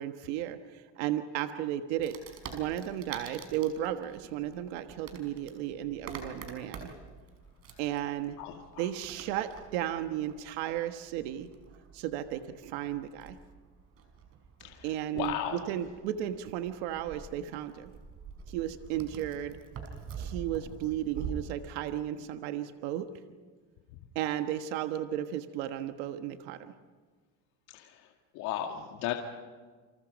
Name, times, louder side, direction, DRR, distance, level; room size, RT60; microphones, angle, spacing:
voice 1, 0.0-2.2 2.5-6.9 7.8-8.4 8.8-11.5 11.9-13.4 14.8-17.9 18.5-19.6 20.2-23.1 24.1-26.7, right 11 dB, 90° right, 7 dB, 1.4 m, -34 dB
Wood, 2.0-21.3, right 6 dB, 45° right, 5.6 m, -47 dB
voice 2, 8.4-8.8 14.6-15.6 27.7-28.0 28.3-29.1, left 11 dB, 75° left, 2 dB, 2.2 m, -35 dB
29.0 x 26.0 x 5.3 m, 1.5 s
cardioid pair, 125°, 31 cm